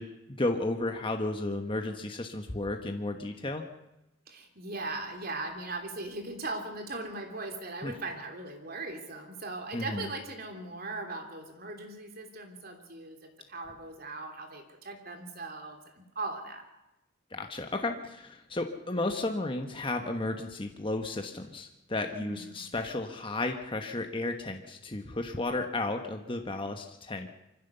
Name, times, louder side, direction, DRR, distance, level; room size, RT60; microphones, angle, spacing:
voice 1, 0.0-3.6 7.8-7.9 9.7-10.1 17.3-27.3, left 2 dB, 25° left, 4 dB, 1.2 m, -33 dB
voice 2, 4.3-16.6 22.1-22.6, right 2 dB, 45° right, 4 dB, 3.1 m, -39 dB
24.5 x 15.5 x 6.9 m, 0.95 s
head